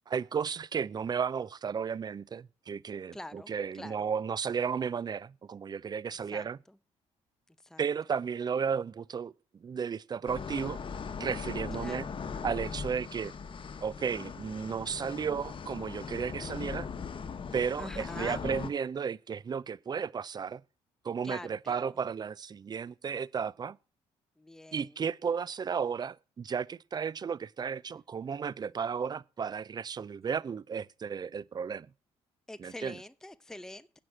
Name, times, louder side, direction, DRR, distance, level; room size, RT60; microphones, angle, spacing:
voice 1, 0.1-6.6 7.8-9.3 9.6-10.8 11.2-12.0 12.4-13.3 13.8-16.9 17.5-20.6 21.0-23.8 24.7-31.9 32.6-33.0, right 6 dB, 35° right, 0.4 m, -34 dB
voice 2, 3.1-4.1 6.1-6.8 7.6-7.8 11.8-12.1 17.8-18.4 21.2-22.0 24.4-24.9 32.5-34.0, left 1 dB, 5° left, 0.7 m, -45 dB
sound 1, 10.3-18.7, left 5 dB, 40° left, 1.2 m, -39 dB
9.5 x 6.0 x 7.7 m
supercardioid pair, 70°, 13 cm